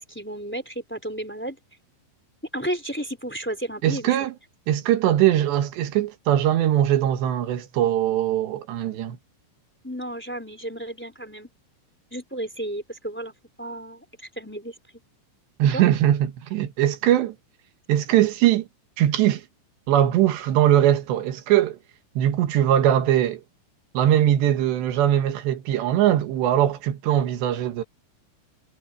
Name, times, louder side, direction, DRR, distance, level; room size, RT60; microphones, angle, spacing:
voice 1, 0.0-1.6 2.5-4.2 9.8-11.5 12.1-13.3 13.6-14.7 15.7-15.8, right 1 dB, 5° left, 2.6 m, -33 dB
voice 2, 3.8-4.3 4.7-9.2 15.6-17.4 17.9-18.7 19.0-19.4 19.9-21.8 22.2-23.4 24.0-27.8, right 11 dB, 70° right, 3.4 m, -21 dB
omnidirectional pair, 5.7 m